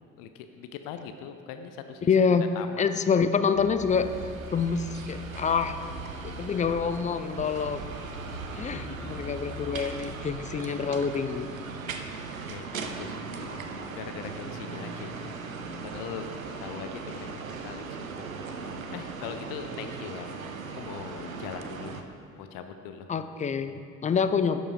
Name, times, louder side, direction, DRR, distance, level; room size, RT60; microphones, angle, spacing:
voice 1, 0.2-2.8 8.7-9.1 12.5-15.3 15.8-16.3 16.6-18.3 18.9-20.3 20.7-22.0 22.4-23.1, left 8 dB, 55° left, 7 dB, 0.7 m, -41 dB
voice 2, 2.1-2.5 2.8-4.1 4.5-5.8 6.2-7.8 8.6-11.5 23.1-24.6, left 6 dB, 20° left, 10 dB, 0.4 m, -26 dB
sound 1, 3.5-10.3, left 4 dB, 40° left, 1.0 m, -45 dB
sound 2, 3.9-22.0, right 4 dB, 85° right, 0.5 m, -38 dB
11.5 x 7.2 x 3.7 m, 2.4 s
figure-of-eight pair, 45°, 40 cm